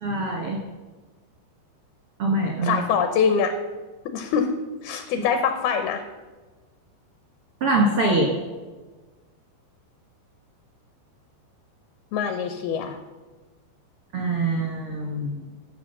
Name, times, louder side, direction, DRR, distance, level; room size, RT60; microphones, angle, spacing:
voice 1, 0.0-0.6 2.2-2.8 7.6-8.3 14.1-15.4, right 2 dB, 75° right, -1 dB, 1.3 m, -23 dB
voice 2, 2.6-3.6 4.1-4.5 4.8-6.0 12.1-13.0, left 6 dB, 75° left, 7 dB, 2.4 m, -24 dB
12.5 x 7.3 x 6.6 m, 1.3 s
omnidirectional pair, 5.2 m